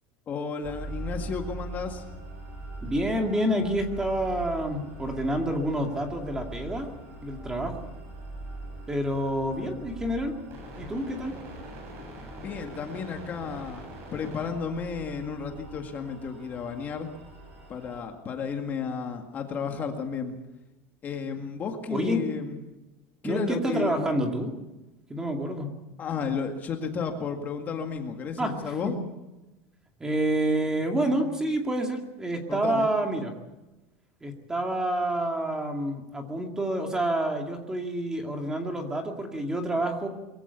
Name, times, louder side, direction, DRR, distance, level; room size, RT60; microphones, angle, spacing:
voice 1, 0.3-2.0 12.4-13.8 14.1-17.1 17.7-20.4 21.0-22.6 23.2-24.2 26.0-28.9 32.5-32.9, left 5 dB, 25° left, 4 dB, 2.0 m, -33 dB
sound 1, 0.6-18.0, right 1 dB, 40° right, 7.3 m, -42 dB
voice 2, 2.8-6.9 7.2-7.8 8.9-10.3 10.8-11.3 21.9-22.2 23.2-24.5 25.1-25.7 28.4-28.9 30.0-33.3 34.2-40.1, right 1 dB, 10° right, 3 dB, 2.3 m, -28 dB
23.0 x 16.0 x 8.3 m, 1.0 s
cardioid pair, 160°, 6 cm